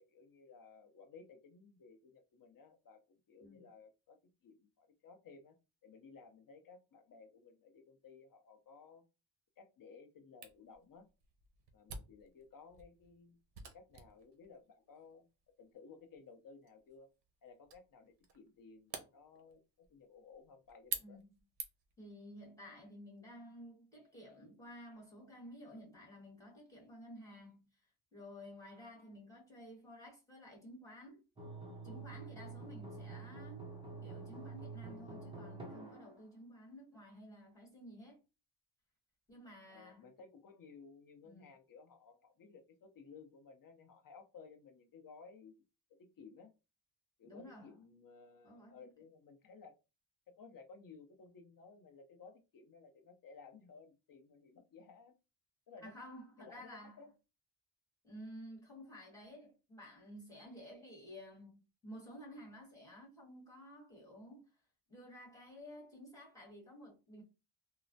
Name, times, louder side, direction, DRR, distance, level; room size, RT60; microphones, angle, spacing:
voice 1, 0.0-3.0 3.3-5.6 5.8-9.0 9.6-11.1 11.7-13.4 13.7-15.3 15.6-17.1 17.4-21.2 27.2-27.3 39.7-45.5 46.0-46.5 47.2-49.8 50.3-55.2 55.7-55.9 56.4-57.1, left 5 dB, 45° left, 0.5 m, -58 dB
Camera, 10.4-22.0, right 5 dB, 55° right, 0.7 m, -50 dB
voice 2, 22.0-31.3 31.8-33.7 34.0-38.2 39.3-40.1 41.2-41.5 47.2-47.7 48.4-48.8 55.8-57.0 58.0-64.6 64.9-67.2, equal, 5° left, 1.4 m, -53 dB
sound 1, 31.4-36.2, right 3 dB, 10° right, 0.5 m, -48 dB
3.1 x 2.0 x 2.6 m
wide cardioid pair, 135°, 50 cm